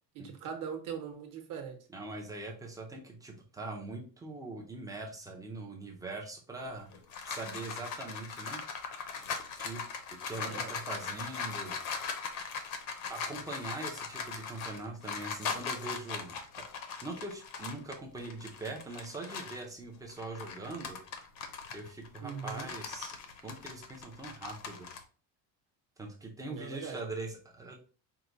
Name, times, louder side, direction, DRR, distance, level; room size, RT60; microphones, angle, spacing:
voice 1, 0.1-1.8 10.4-10.7 22.2-22.7 26.4-27.0, right 7 dB, 45° right, 4 dB, 1.0 m, -41 dB
voice 2, 1.9-6.9 7.2-8.6 9.6-9.8 10.2-11.8 13.1-16.6 17.0-21.0 21.7-23.1 23.4-24.9 26.0-27.7, right 2 dB, 10° right, 0 dB, 0.4 m, -42 dB
sound 1, 6.7-19.7 20.1-25.0, left 5 dB, 50° left, 0.7 m, -40 dB
4.6 x 2.2 x 3.9 m, 0.37 s
cardioid pair, 175°, 44 cm